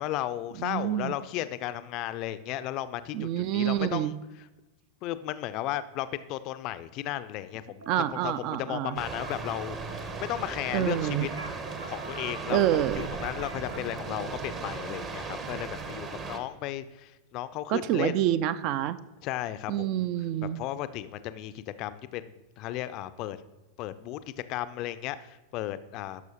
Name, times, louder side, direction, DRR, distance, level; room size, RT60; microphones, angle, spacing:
voice 1, 0.0-4.1 5.0-7.8 8.2-11.3 11.9-12.6 13.0-18.2 19.2-19.9 20.6-23.4 23.8-24.2 24.5-26.2, left 13 dB, 40° left, 13 dB, 0.4 m, -34 dB
voice 2, 0.6-1.2 3.1-4.1 7.9-9.0 10.7-11.3 12.5-13.1 17.7-19.0 19.7-20.6, right 12 dB, 40° right, 16 dB, 0.4 m, -27 dB
sound 1, 7.8-8.6 8.8-13.8, right 3 dB, 70° right, 0.8 m, -45 dB
sound 2, 9.0-16.4, right 4 dB, 25° right, 0.8 m, -37 dB
12.0 x 6.2 x 2.8 m, 1.1 s
figure-of-eight pair, 90°, 0 cm